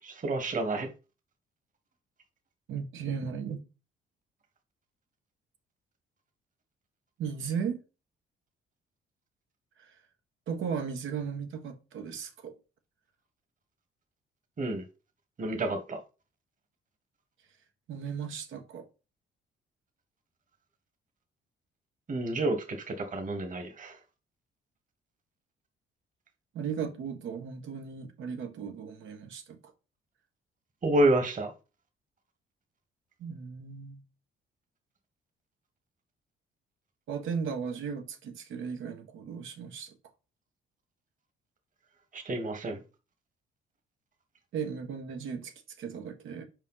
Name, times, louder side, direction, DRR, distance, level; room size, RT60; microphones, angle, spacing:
voice 1, 0.0-0.9 14.6-14.8 15.4-16.0 22.1-24.0 30.8-31.5 42.1-42.8, right 1 dB, 40° right, 1.7 m, -29 dB
voice 2, 2.7-3.6 7.2-7.8 9.8-10.0 10.5-12.5 17.9-18.9 26.5-29.7 33.2-34.0 37.1-40.0 44.5-46.4, right 6 dB, 80° right, 1.6 m, -36 dB
5.5 x 4.9 x 5.7 m
cardioid pair, 90°, 20 cm